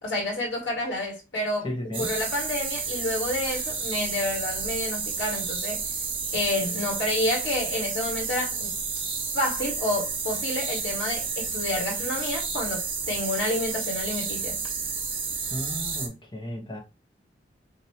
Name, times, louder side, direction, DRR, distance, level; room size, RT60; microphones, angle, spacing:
voice 1, 0.0-1.7 2.0-5.9 6.3-8.8 9.3-14.7, left 1 dB, 75° left, 2.3 m, -29 dB
voice 2, 1.6-2.1 15.5-16.8, equal, 25° left, 1.2 m, -34 dB
sound 1, 1.9-16.1, right 5 dB, 30° right, 1.3 m, -31 dB
5.8 x 2.9 x 3.1 m
head